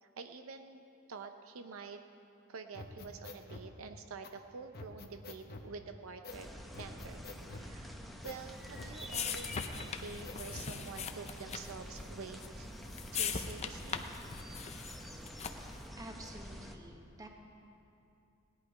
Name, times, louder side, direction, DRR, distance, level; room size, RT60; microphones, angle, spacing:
voice 1, 0.0-2.0 2.5-7.3 7.5-8.0 8.2-12.7 13.1-14.1, right 5 dB, 70° right, 7 dB, 0.6 m, -48 dB
sound 1, 2.7-3.7 4.2-4.3 4.7-5.7 6.2-6.4 6.7-7.7 8.2-8.4 8.7-9.7 10.2-10.7, left 2 dB, 45° left, 0.9 m, -47 dB
sound 2, 6.3-16.7, equal, ahead, 0.8 m, -47 dB
sound 3, 8.4-15.8, left 6 dB, 30° left, 0.6 m, -41 dB
voice 2, 16.0-17.3, right 1 dB, 15° right, 2 dB, 1.2 m, -49 dB
17.5 x 11.0 x 4.9 m, 2.7 s
head